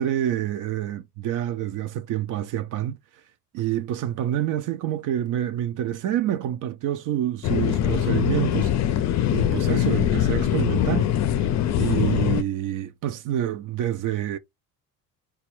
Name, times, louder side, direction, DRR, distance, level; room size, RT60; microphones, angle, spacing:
voice 1, 0.0-3.2 3.5-9.1 9.3-11.1 11.8-14.4, right 11 dB, 55° right, 0.5 m, -27 dB
sound 1, 7.4-12.4, left 11 dB, 45° left, 0.4 m, -22 dB
4.1 x 2.3 x 3.0 m
cardioid pair, 120°, 38 cm